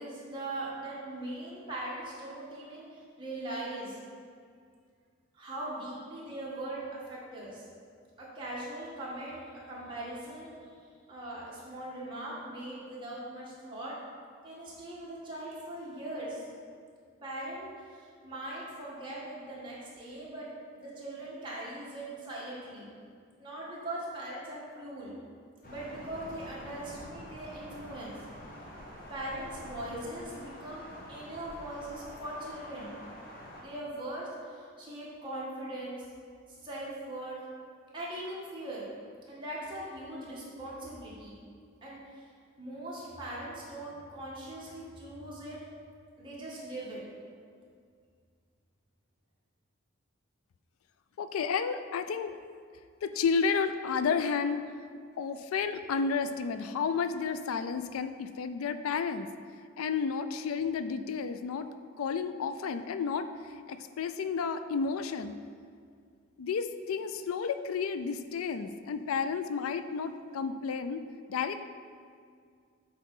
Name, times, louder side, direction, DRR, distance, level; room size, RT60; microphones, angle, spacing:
voice 1, 0.0-4.0 5.3-7.6 8.2-10.5 11.1-13.9 14.4-16.5 17.2-20.5 20.7-22.9 23.4-25.1 25.6-28.1 29.1-32.9 33.6-36.1 36.6-37.4 37.9-38.9 39.3-41.3 41.8-42.0 42.6-45.6 46.2-47.0, right 1 dB, 25° right, -7 dB, 1.7 m, -40 dB
Thunder, 25.6-33.6, equal, 40° left, 1.1 m, -47 dB
voice 2, 51.2-52.4 53.0-54.6 55.2-59.3 59.8-61.7 62.0-65.3 66.4-71.0 71.3-71.6, left 5 dB, 85° left, 11 dB, 0.4 m, -31 dB
8.0 x 3.7 x 5.4 m, 2.2 s
head